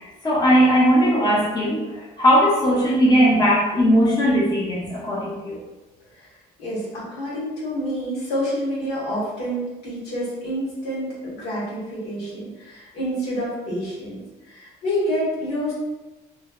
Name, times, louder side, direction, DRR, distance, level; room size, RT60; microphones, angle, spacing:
voice 1, 0.2-1.9 2.2-5.6, equal, 25° left, -5 dB, 0.7 m, -18 dB
voice 2, 6.6-14.2 14.5-15.7, equal, 90° left, -7 dB, 1.3 m, -28 dB
3.1 x 2.0 x 2.3 m, 1.1 s
cardioid pair, 110°, 17 cm